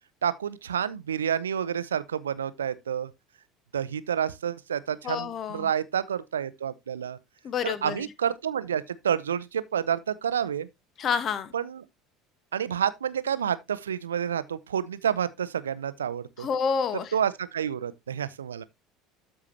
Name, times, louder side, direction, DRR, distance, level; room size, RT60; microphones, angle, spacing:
voice 1, 0.2-3.1 3.7-7.2 7.6-10.7 11.5-11.8 12.5-16.5 17.1-18.6, right 8 dB, 75° right, 0.6 m, -29 dB
voice 2, 5.0-5.7 7.4-7.9 11.0-11.5 16.4-17.1, left 6 dB, 40° left, 1.2 m, -28 dB
13.0 x 4.8 x 2.8 m
figure-of-eight pair, 65°, 0 cm